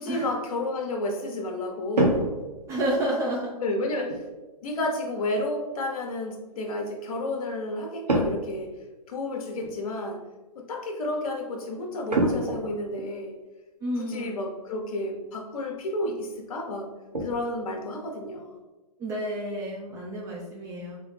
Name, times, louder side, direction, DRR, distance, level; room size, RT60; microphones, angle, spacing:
voice 1, 0.0-2.3 3.6-4.2 4.6-8.7 9.1-10.2 10.5-13.3 14.0-16.9 17.2-18.6, left 1 dB, 60° left, 3 dB, 1.0 m, -31 dB
sound 1, 2.0-3.1 4.1-4.3 8.1-8.6 8.9-9.0 9.6-9.8 12.1-13.1 14.5-14.6 15.0-15.1 15.6-15.8 16.2-16.3 16.7-17.4, right 1 dB, 90° right, 1.0 m, -27 dB
voice 2, 2.7-3.6 13.8-14.3 19.0-21.0, right 1 dB, 15° right, -3 dB, 0.4 m, -30 dB
4.0 x 3.0 x 3.2 m, 1.2 s
hypercardioid pair, 130°, 21 cm